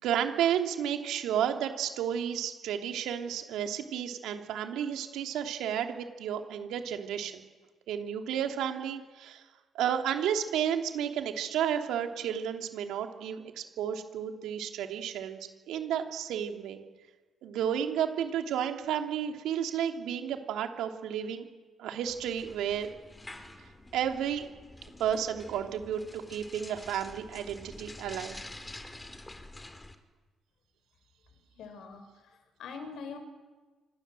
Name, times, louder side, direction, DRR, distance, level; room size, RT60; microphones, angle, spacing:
voice 1, 0.0-7.4 7.9-9.4 9.7-15.4 15.7-16.8 17.4-21.5 21.8-22.9 23.9-24.4 25.0-26.0 26.3-28.4, right 9 dB, 85° right, 5 dB, 3.1 m, -32 dB
sound 1, 22.0-30.0, left 2 dB, 15° left, 3.2 m, -48 dB
voice 2, 31.5-33.2, left 5 dB, 75° left, 7 dB, 5.6 m, -44 dB
28.0 x 26.5 x 7.8 m, 1.3 s
cardioid pair, 90°, 0 cm